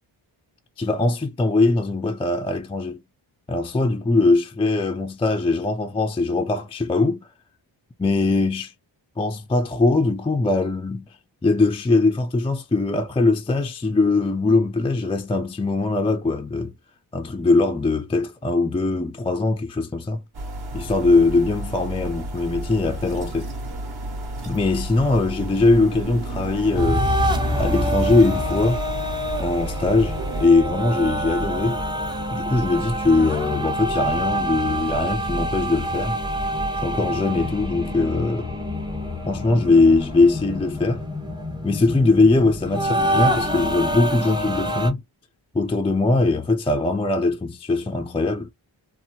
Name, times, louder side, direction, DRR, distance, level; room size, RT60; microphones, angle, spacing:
voice 1, 0.8-3.0 3.5-7.3 8.0-8.7 9.2-11.2 11.4-16.7 17.1-20.2 20.7-23.5 24.5-27.1 27.6-28.8 29.4-31.8 32.3-36.2 36.8-38.5 39.3-41.0 41.6-45.0 45.5-48.5, left 3 dB, 15° left, 0.3 m, -21 dB
sound 1, 20.3-30.5, right 1 dB, 55° right, 1.2 m, -32 dB
sound 2, 26.8-44.9, equal, 10° right, 0.7 m, -26 dB
2.8 x 2.0 x 2.7 m
cardioid pair, 60°, 47 cm